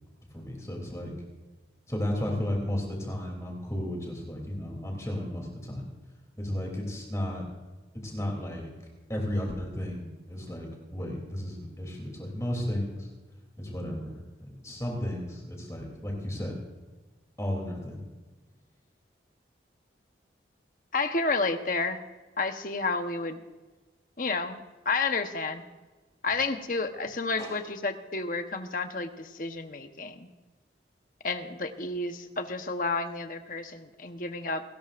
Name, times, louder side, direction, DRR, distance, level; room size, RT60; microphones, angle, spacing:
voice 1, 0.3-1.1 1.9-5.9 6.4-7.4 8.0-8.7 9.1-13.1 13.6-14.1 14.4-16.6 17.4-18.0 27.4-27.6, left 1 dB, 15° left, 0 dB, 3.1 m, -33 dB
voice 2, 20.9-22.0 22.4-23.4 24.2-25.6 26.2-30.3 31.2-34.6, left 3 dB, 50° left, 7 dB, 1.1 m, -31 dB
29.0 x 13.5 x 2.6 m, 1.2 s
head